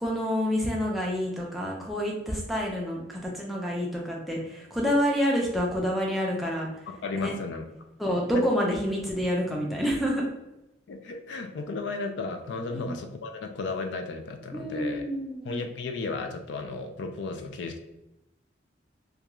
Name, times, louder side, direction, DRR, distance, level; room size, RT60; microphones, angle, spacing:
voice 1, 0.0-6.7 7.1-7.3 8.0-10.2 12.7-13.0 14.5-15.6, equal, ahead, -3 dB, 0.4 m, -28 dB
voice 2, 6.9-7.7 8.3-8.8 10.9-15.1 15.4-17.8, left 3 dB, 70° left, 6 dB, 0.3 m, -34 dB
2.4 x 2.2 x 2.9 m, 0.93 s
head